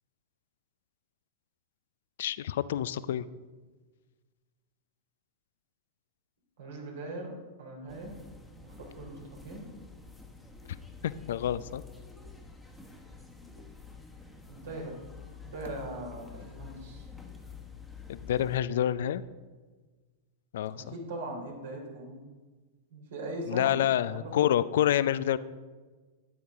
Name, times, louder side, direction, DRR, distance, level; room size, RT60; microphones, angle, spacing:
voice 1, 2.2-3.3 11.0-11.8 18.1-19.2 20.5-20.8 23.5-25.4, left 11 dB, 65° left, 17 dB, 0.4 m, -28 dB
voice 2, 6.6-7.3 7.6-8.2 8.6-9.7 14.5-15.0 15.3-17.1 20.8-22.2 22.9-23.7 24.1-24.5, right 2 dB, 70° right, -1 dB, 3.1 m, -40 dB
sound 1, 7.9-18.6, left 5 dB, 5° left, 1.3 m, -48 dB
12.0 x 9.3 x 3.5 m, 1.4 s
hypercardioid pair, 100°, 0 cm